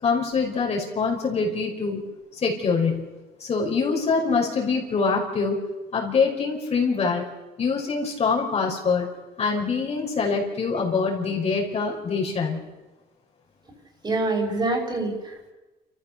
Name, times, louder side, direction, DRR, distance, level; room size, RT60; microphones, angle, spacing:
voice 1, 0.0-2.0 2.3-3.1 3.4-5.6 5.9-7.2 7.6-9.1 9.4-12.7, left 4 dB, 40° left, -1 dB, 5.3 m, -24 dB
voice 2, 14.0-15.5, right 2 dB, 25° right, 1 dB, 5.9 m, -26 dB
29.5 x 14.5 x 6.8 m, 1.1 s
cardioid pair, 110°, 17 cm